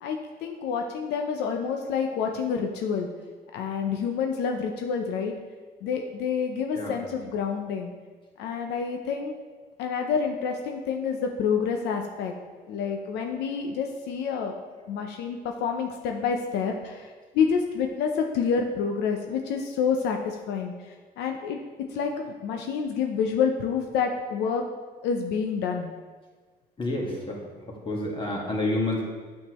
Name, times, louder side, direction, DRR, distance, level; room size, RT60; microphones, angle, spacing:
voice 1, 0.0-3.1 3.5-5.3 5.8-7.9 8.4-9.3 9.8-12.3 12.7-14.5 14.9-21.6 21.9-24.6 25.0-25.9, left 6 dB, 85° left, 3 dB, 0.6 m, -28 dB
voice 2, 26.8-27.4 27.9-29.0, left 1 dB, 30° left, -2 dB, 1.8 m, -28 dB
8.6 x 6.5 x 3.1 m, 1.4 s
cardioid pair, 110°, 17 cm